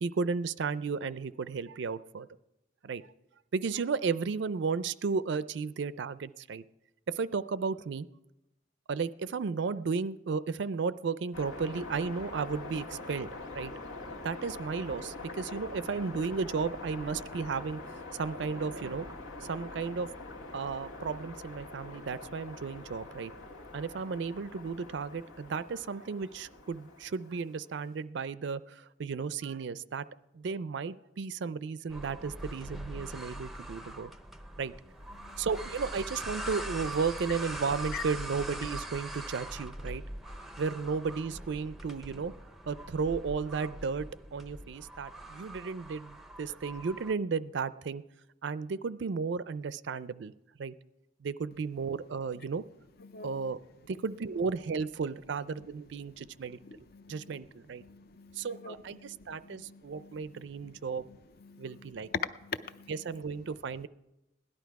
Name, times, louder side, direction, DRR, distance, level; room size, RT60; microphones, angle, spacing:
voice 1, 0.0-2.3 2.8-3.0 3.5-6.6 7.1-8.1 8.9-13.3 13.5-13.7 14.2-20.1 20.5-23.3 23.7-30.0 30.3-34.1 34.6-34.7 35.4-40.0 40.6-42.3 42.7-44.1 44.3-48.0 48.4-50.3 50.6-50.7 51.2-52.6 53.2-53.6 53.9-56.6 57.1-57.8 58.4-61.1 61.6-62.1 62.9-63.9, right 5 dB, 60° right, 0.4 m, -34 dB
sound 1, 11.3-27.7, left 2 dB, 90° left, 1.9 m, -44 dB
sound 2, 31.9-47.1, right 1 dB, ahead, 0.5 m, -42 dB
voice 2, 35.2-35.5 37.9-38.0 53.0-53.4 56.6-57.4 57.8-60.7 61.4-61.9 62.4-62.9, left 6 dB, 50° left, 0.5 m, -46 dB
17.0 x 11.5 x 4.7 m
head